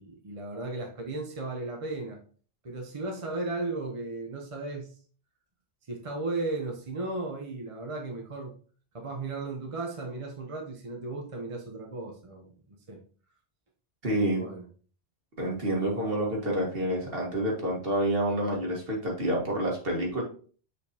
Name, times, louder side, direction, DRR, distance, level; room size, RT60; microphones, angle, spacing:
voice 1, 0.0-2.2 2.6-5.0 5.9-8.6 8.9-13.0 14.3-14.6, right 2 dB, 30° right, 1 dB, 1.0 m, -35 dB
voice 2, 14.0-14.4 15.4-20.2, right 1 dB, 60° right, -1 dB, 2.0 m, -28 dB
6.8 x 5.1 x 2.8 m, 0.42 s
omnidirectional pair, 1.1 m